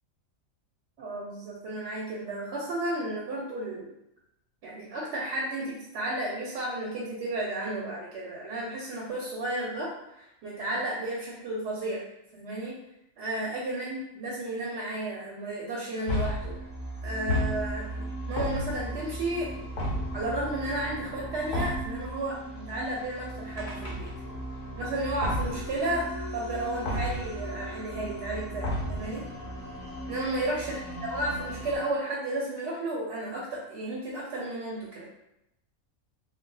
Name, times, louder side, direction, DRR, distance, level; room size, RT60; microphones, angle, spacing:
voice 1, 1.0-3.9 4.6-12.0 12.3-12.8 13.2-16.5 17.0-19.5 20.1-24.1 24.8-26.1 26.3-29.2 30.1-35.1, right 1 dB, 65° right, -4 dB, 0.8 m, -33 dB
sound 1, 16.1-16.6 17.3-17.9 18.4-19.0 19.8-20.3 21.5-22.0 23.6-24.4 25.2-25.7 26.8-27.4 28.6-29.2, left 1 dB, 60° left, 0.6 m, -31 dB
sound 2, 16.3-31.8, right 1 dB, 10° right, 0.5 m, -38 dB
2.2 x 2.0 x 3.7 m, 0.85 s
omnidirectional pair, 1.4 m